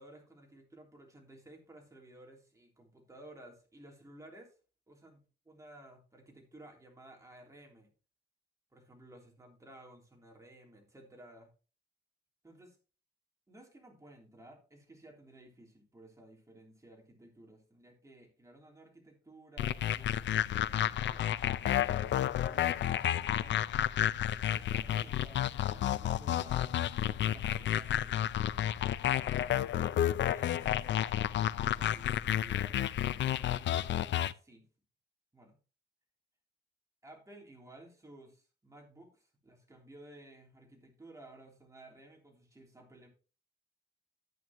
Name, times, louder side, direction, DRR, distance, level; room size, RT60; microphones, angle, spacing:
voice 1, 0.0-4.5 4.9-7.9 8.7-11.5 12.4-12.8 13.5-21.3 21.7-23.7 24.5-28.2 29.5-31.0 31.6-32.8 33.6-34.7 35.3-35.6 37.0-43.1, right 1 dB, 15° right, 0 dB, 3.3 m, -56 dB
sound 1, 19.6-34.3, left 11 dB, 75° left, 0.5 m, -31 dB
11.0 x 9.0 x 3.0 m, 0.35 s
wide cardioid pair, 130°, 19 cm